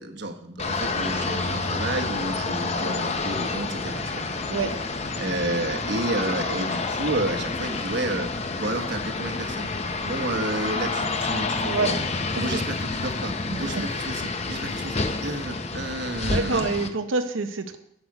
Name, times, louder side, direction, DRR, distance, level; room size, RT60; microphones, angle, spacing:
voice 1, 0.0-4.2 5.2-8.3 8.6-9.7 10.0-11.9 12.4-16.7, right 2 dB, 55° right, 6 dB, 1.2 m, -31 dB
sound 1, 0.6-16.9, left 3 dB, 30° left, 0.6 m, -29 dB
voice 2, 11.6-12.0 12.4-12.6 13.5-13.8 16.2-17.8, right 3 dB, 75° right, 7 dB, 0.7 m, -27 dB
10.5 x 7.9 x 4.9 m, 0.77 s
head